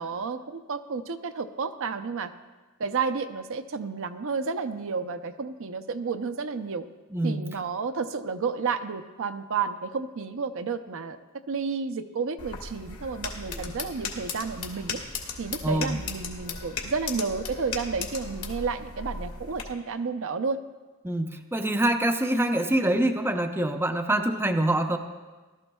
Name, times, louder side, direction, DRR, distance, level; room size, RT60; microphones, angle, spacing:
voice 1, 0.0-2.3 2.8-6.9 7.2-11.2 11.5-15.0 15.4-20.6 22.3-22.5, right 5 dB, 65° right, 8 dB, 0.6 m, -31 dB
voice 2, 7.1-7.4 13.5-13.6 15.6-16.0 21.0-25.0, right 1 dB, 10° right, 5 dB, 0.5 m, -25 dB
sound 1, 12.4-19.6, left 4 dB, 65° left, 1.6 m, -36 dB
18.0 x 12.5 x 2.3 m, 1.3 s
head